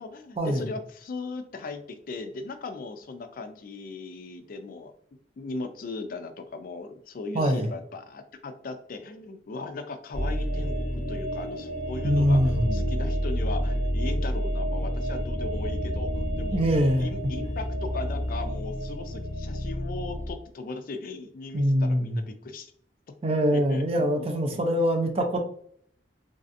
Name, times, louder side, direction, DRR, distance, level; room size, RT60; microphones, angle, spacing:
voice 1, 0.0-4.9 5.4-16.6 17.0-22.7 23.5-24.7, left 3 dB, 55° left, 8 dB, 0.4 m, -38 dB
voice 2, 7.3-7.7 12.0-12.8 16.5-17.1 21.5-22.2 23.2-25.4, equal, 35° right, 4 dB, 0.5 m, -23 dB
sound 1, 10.1-20.3, equal, 20° left, 0.9 m, -29 dB
3.2 x 2.6 x 2.5 m, 0.62 s
head